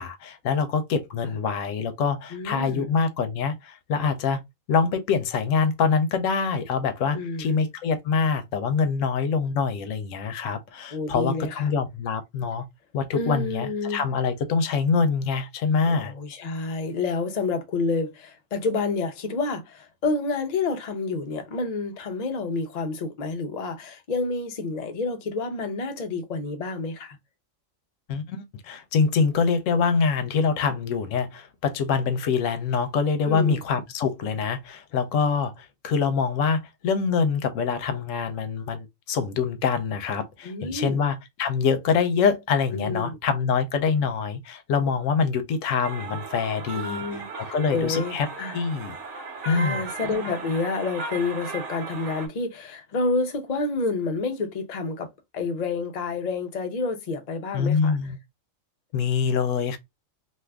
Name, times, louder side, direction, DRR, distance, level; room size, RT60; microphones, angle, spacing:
voice 1, 0.0-4.4 4.7-12.7 12.9-16.1 28.1-47.2 47.5-48.3 48.5-48.9 49.5-49.8 57.5-58.2 58.9-59.8, left 5 dB, 75° left, 0.9 m, -25 dB
voice 2, 2.3-2.8 7.1-7.5 10.9-11.7 13.1-14.0 15.9-27.2 33.2-33.6 40.4-41.0 42.7-43.2 46.7-48.6 49.4-55.1 55.3-58.0, left 3 dB, 55° left, 0.4 m, -29 dB
sound 1, 45.8-52.3, right 3 dB, 65° right, 1.1 m, -36 dB
2.6 x 2.4 x 3.3 m
omnidirectional pair, 1.4 m